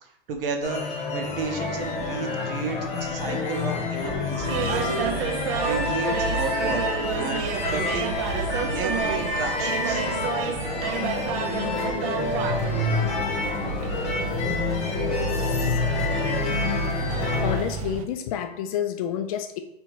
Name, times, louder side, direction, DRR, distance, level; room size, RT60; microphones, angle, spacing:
voice 1, 0.0-6.8 7.2-8.1 8.7-10.0, right 4 dB, 65° right, 4 dB, 1.0 m, -33 dB
sound 1, 0.6-17.6, left 3 dB, 25° left, 1.2 m, -28 dB
sound 2, 4.4-18.1, right 5 dB, 35° right, 0.4 m, -30 dB
voice 2, 14.6-15.8 17.0-19.6, left 9 dB, 40° left, 7 dB, 0.4 m, -31 dB
3.5 x 2.9 x 4.6 m, 0.79 s
hypercardioid pair, 130°, 31 cm